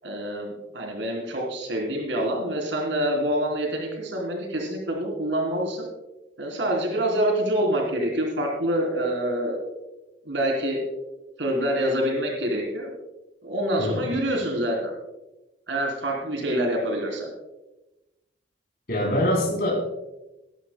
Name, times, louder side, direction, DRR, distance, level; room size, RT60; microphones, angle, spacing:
voice 1, 0.0-5.9 6.4-9.6 10.2-10.8 11.4-12.9 13.4-14.9 15.7-17.3, right 1 dB, 85° right, 0 dB, 3.5 m, -26 dB
voice 2, 18.9-19.9, left 1 dB, 55° left, -4 dB, 3.6 m, -24 dB
19.0 x 13.0 x 2.2 m, 1.0 s
head